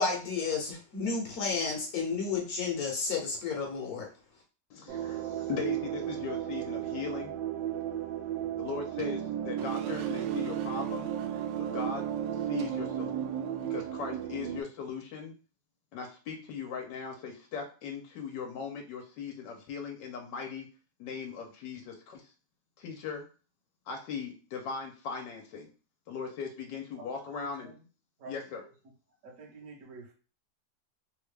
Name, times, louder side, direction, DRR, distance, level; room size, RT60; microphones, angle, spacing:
voice 1, 0.0-4.1, left 4 dB, 65° left, 0 dB, 1.2 m, -31 dB
voice 2, 4.7-7.3 8.6-11.1 11.6-12.0 12.4-13.3 13.7-15.3 15.9-20.7 21.0-22.3 22.8-23.2 23.9-25.7 26.1-27.7 28.3-28.6, left 6 dB, 85° left, 2 dB, 1.3 m, -39 dB
sound 1, 4.9-14.6, right 10 dB, 90° right, 1.2 m, -34 dB
voice 3, 27.0-27.8 28.2-28.3 29.2-30.1, right 3 dB, 55° right, -1 dB, 1.2 m, -48 dB
3.4 x 2.3 x 3.2 m, 0.35 s
omnidirectional pair, 1.9 m